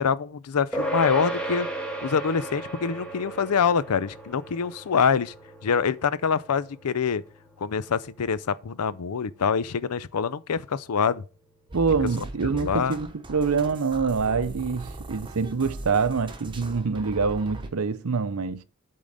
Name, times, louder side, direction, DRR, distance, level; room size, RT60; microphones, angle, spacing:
voice 1, 0.0-1.7 2.0-5.3 5.6-7.2 7.6-11.2 12.5-13.0, left 6 dB, 90° left, 0.5 m, -25 dB
sound 1, 0.7-10.4, right 1 dB, 5° left, 1.4 m, -36 dB
sound 2, 11.7-17.7, right 2 dB, 20° right, 0.9 m, -39 dB
voice 2, 11.7-18.6, right 5 dB, 75° right, 0.6 m, -25 dB
8.6 x 3.8 x 6.5 m
head